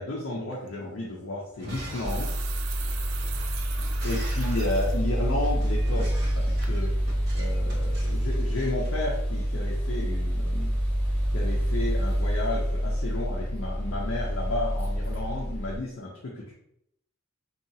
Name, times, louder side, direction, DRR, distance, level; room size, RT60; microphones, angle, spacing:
voice 1, 0.0-2.3 4.0-7.0 7.3-10.8 11.3-16.5, left 2 dB, 65° left, -4 dB, 0.5 m, -32 dB
sound 1, 0.5-0.7 1.7-5.0 5.5-5.6 6.1-6.4 6.6-6.8, right 8 dB, 80° right, 0.3 m, -41 dB
Shatter, 1.5-9.5, right 1 dB, 50° right, 0.8 m, -45 dB
sound 2, 2.0-15.8, equal, 10° left, 0.7 m, -27 dB
2.8 x 2.3 x 2.6 m, 0.75 s
head